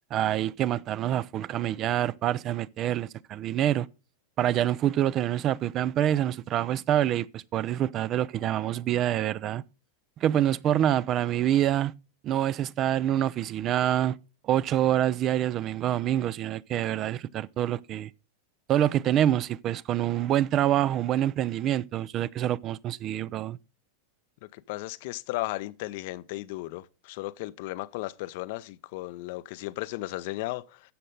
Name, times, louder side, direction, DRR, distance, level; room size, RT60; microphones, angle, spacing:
voice 1, 0.1-3.9 4.4-9.6 10.2-11.9 12.2-14.2 14.4-18.1 18.7-23.6, right 11 dB, 35° right, 0.4 m, -26 dB
voice 2, 24.5-30.9, left 19 dB, 50° left, 0.6 m, -35 dB
12.5 x 7.6 x 3.9 m
figure-of-eight pair, 90°, 0 cm